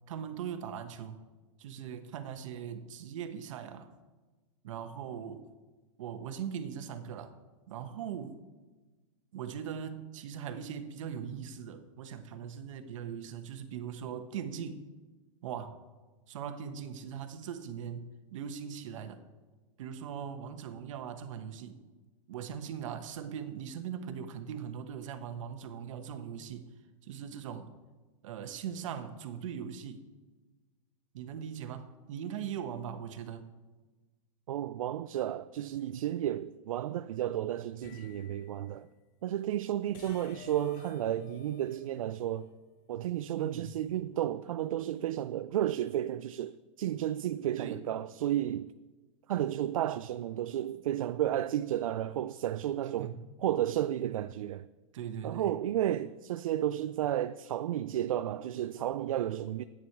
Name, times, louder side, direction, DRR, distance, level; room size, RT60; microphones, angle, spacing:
voice 1, 0.1-1.2 1.6-3.9 4.6-5.4 6.0-7.3 7.7-8.4 9.3-14.8 15.4-15.8 16.3-19.2 19.8-21.8 22.3-26.7 27.0-27.7 28.2-30.0 31.1-33.5 43.3-43.7 47.6-47.8 53.0-53.2 54.9-55.5, right 8 dB, 70° right, 1.2 m, -40 dB
voice 2, 34.5-38.9 39.2-42.5 42.9-48.7 49.3-53.1 53.4-54.7 55.2-59.6, right 12 dB, 85° right, 0.4 m, -32 dB
sound 1, 37.8-38.7 39.9-42.8, left 10 dB, 50° left, 0.7 m, -52 dB
11.0 x 9.1 x 4.7 m
hypercardioid pair, 130°, 17 cm